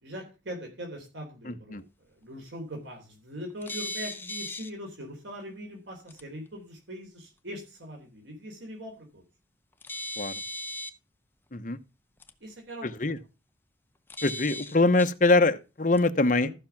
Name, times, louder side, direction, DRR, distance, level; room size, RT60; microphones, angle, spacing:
voice 1, 0.0-9.2 12.4-13.1 16.3-16.5, equal, 80° right, 3.6 m, -41 dB
sound 1, 3.6-4.7 6.1-6.2 9.8-10.9 12.2-12.3 14.1-15.1 16.0-16.1, left 2 dB, 10° left, 0.7 m, -37 dB
voice 2, 12.8-13.2 14.2-16.5, left 2 dB, 45° left, 0.9 m, -23 dB
14.5 x 5.8 x 5.9 m
head